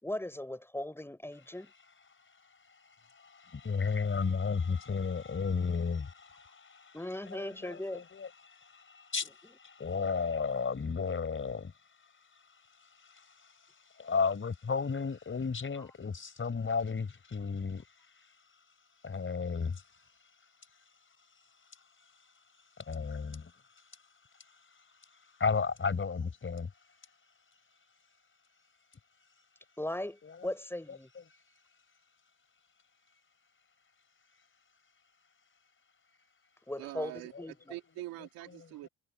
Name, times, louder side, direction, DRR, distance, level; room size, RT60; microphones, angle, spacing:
voice 1, 0.0-1.7 6.9-8.0 29.8-31.1 36.7-37.8, left 1 dB, 5° left, 3.8 m, -38 dB
voice 2, 3.1-7.0 7.3-11.7 13.1-13.2 14.0-17.8 19.0-19.8 22.9-23.5 25.4-26.7 30.2-30.5 30.9-31.2, left 5 dB, 35° left, 4.8 m, -33 dB
voice 3, 36.8-37.3 37.7-38.9, right 17 dB, 80° right, 2.6 m, -43 dB
supercardioid pair, 65°, 35 cm